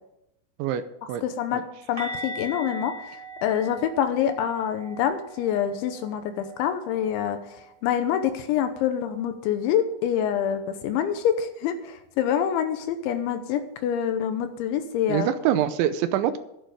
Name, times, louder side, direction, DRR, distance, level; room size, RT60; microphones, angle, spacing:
voice 1, 1.2-1.6 1.9-15.3, left 9 dB, 80° left, 8 dB, 3.2 m, -26 dB
sound 1, 2.0-7.7 8.0-8.3 8.6-8.8 12.0-12.1, right 1 dB, 10° right, 1.9 m, -40 dB
voice 2, 15.1-16.4, right 10 dB, 85° right, 11 dB, 3.0 m, -24 dB
11.5 x 11.5 x 5.1 m, 0.83 s
omnidirectional pair, 5.5 m